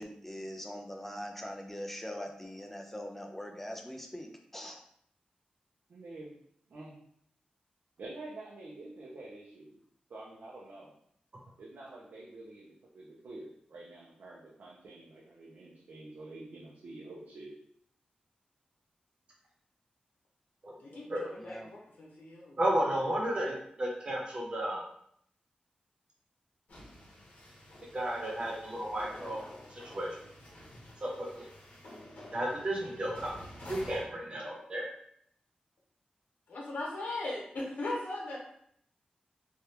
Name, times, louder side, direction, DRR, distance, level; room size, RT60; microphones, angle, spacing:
voice 1, 0.0-4.8 21.4-21.7, equal, 10° left, 3 dB, 0.4 m, -42 dB
voice 2, 5.9-6.3 6.7-6.9 8.0-9.8 10.1-10.9 11.6-17.5, right 2 dB, 80° right, -4 dB, 0.5 m, -48 dB
voice 3, 20.8-22.6 36.5-38.4, left 2 dB, 85° left, -3 dB, 0.9 m, -38 dB
voice 4, 22.6-24.8 27.9-29.4 29.7-30.1 31.0-31.5 32.3-33.3 33.7-34.8, right 1 dB, 40° right, -3 dB, 0.9 m, -33 dB
sound 1, 26.7-34.1, left 1 dB, 65° left, 1.1 m, -50 dB
3.2 x 2.3 x 2.8 m, 0.68 s
wide cardioid pair, 115°, 3 cm